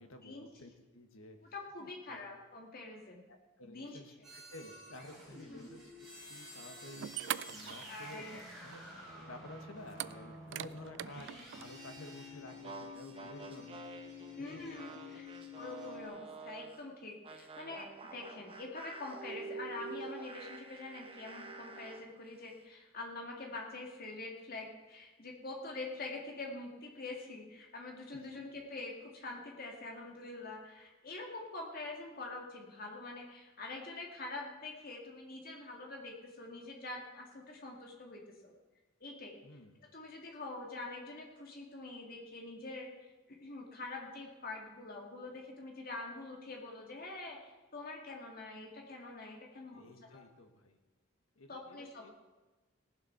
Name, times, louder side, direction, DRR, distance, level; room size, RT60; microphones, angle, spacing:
voice 1, 0.0-1.4 1.8-2.2 3.3-5.9 6.3-7.1 7.5-8.8 9.2-13.8 14.4-14.9 15.2-15.3 39.4-39.8 49.7-50.8 51.4-52.2, left 2 dB, 90° left, 6 dB, 1.5 m, -52 dB
voice 2, 1.5-3.3 3.6-4.0 5.5-5.7 7.7-8.4 14.4-15.3 15.5-38.5 39.0-39.4 39.9-42.9 43.3-50.2 51.5-52.2, left 2 dB, 45° left, 0 dB, 2.1 m, -45 dB
sound 1, 4.2-16.1, left 2 dB, ahead, 4.3 m, -50 dB
sound 2, 6.5-6.6 7.0-8.4 8.7-8.8 9.9-11.7, right 11 dB, 60° right, 0.3 m, -41 dB
sound 3, 12.5-16.8 17.2-22.1, right 4 dB, 25° right, 0.8 m, -48 dB
18.0 x 7.6 x 5.8 m, 1.2 s
head